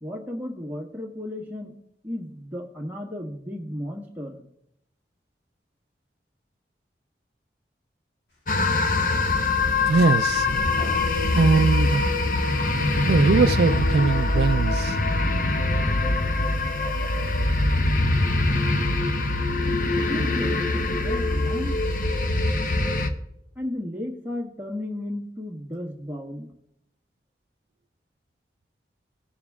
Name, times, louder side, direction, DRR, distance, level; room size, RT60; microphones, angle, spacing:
voice 1, 0.0-1.7 2.0-4.4 20.1-21.8 23.5-26.5, left 1 dB, 10° right, 1.5 m, -34 dB
sound 1, 8.5-23.1, left 2 dB, 50° left, 0.8 m, -23 dB
sound 2, 9.6-10.1 10.4-13.0, left 1 dB, 80° left, 2.5 m, -38 dB
voice 2, 9.9-10.5 11.3-12.0 13.1-15.0, right 4 dB, 65° right, 0.3 m, -21 dB
17.0 x 7.1 x 3.6 m
head